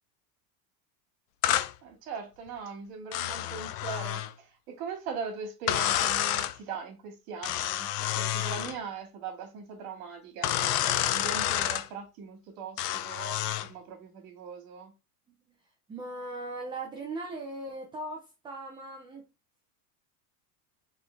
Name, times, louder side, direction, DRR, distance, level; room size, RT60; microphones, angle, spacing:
sound 1, 1.4-1.7 3.1-4.3 5.7-6.5 7.4-8.8 10.4-11.9 12.8-13.7, left 12 dB, 90° left, 0.6 m, -29 dB
voice 1, 1.8-14.9, right 5 dB, 60° right, 1.9 m, -40 dB
voice 2, 15.9-19.2, right 2 dB, 10° right, 0.4 m, -39 dB
4.0 x 3.4 x 3.3 m
supercardioid pair, 150°, 46 cm